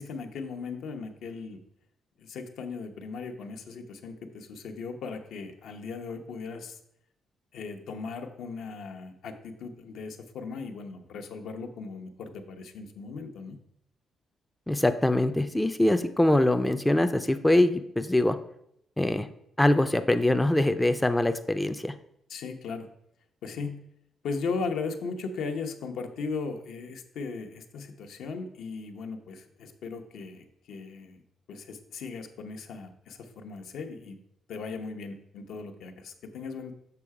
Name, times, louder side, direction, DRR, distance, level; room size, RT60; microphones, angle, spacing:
voice 1, 0.0-1.6 2.2-6.8 7.5-13.6 22.3-22.9 23.4-23.8 24.2-31.2 31.5-34.2 34.5-36.7, left 4 dB, 80° left, 4 dB, 0.9 m, -37 dB
voice 2, 14.7-18.4 19.0-19.3 19.6-21.9, left 1 dB, 5° left, 8 dB, 0.4 m, -23 dB
6.9 x 5.7 x 4.8 m, 0.76 s
cardioid pair, 130°, 0 cm